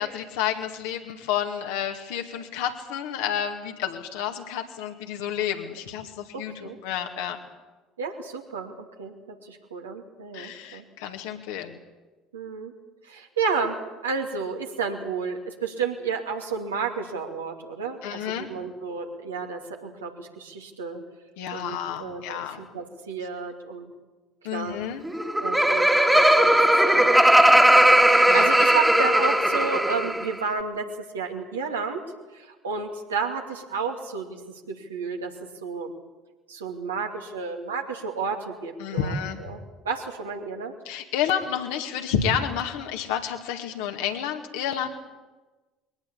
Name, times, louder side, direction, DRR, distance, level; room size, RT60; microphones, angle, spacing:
voice 1, 0.0-7.4 10.3-11.8 18.0-18.5 21.4-22.6 24.4-25.0 28.3-28.5 38.8-39.4 40.9-44.9, left 9 dB, 70° left, 4 dB, 2.2 m, -30 dB
voice 2, 6.3-6.8 8.0-10.8 12.3-12.7 13.0-21.0 21.5-23.9 24.4-24.9 25.4-26.6 26.8-30.9 31.1-32.0 32.3-34.4 34.7-35.3 35.6-35.9 36.5-39.6 39.8-40.7, right 5 dB, 85° right, 2 dB, 2.6 m, -32 dB
Laughter, 25.1-30.3, right 1 dB, 5° right, 2.0 m, -18 dB
21.5 x 18.5 x 8.5 m, 1.2 s
figure-of-eight pair, 60°, 0 cm